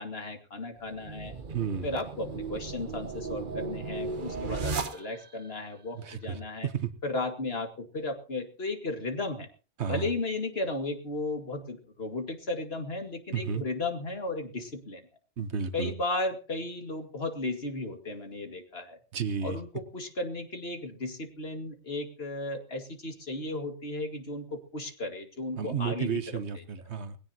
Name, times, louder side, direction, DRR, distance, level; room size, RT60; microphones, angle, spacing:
voice 1, 0.0-1.3 1.8-6.7 7.0-9.5 9.9-15.0 15.7-19.0 19.4-26.1, left 2 dB, 55° left, 6 dB, 2.3 m, -35 dB
sound 1, 0.9-5.5, right 4 dB, 45° right, 1.1 m, -36 dB
voice 2, 1.5-1.9 5.9-6.9 9.8-10.1 13.3-13.6 15.4-15.9 19.1-19.6 25.6-27.2, right 7 dB, 70° right, 12 dB, 1.4 m, -32 dB
21.0 x 17.0 x 2.9 m, 0.35 s
omnidirectional pair, 1.2 m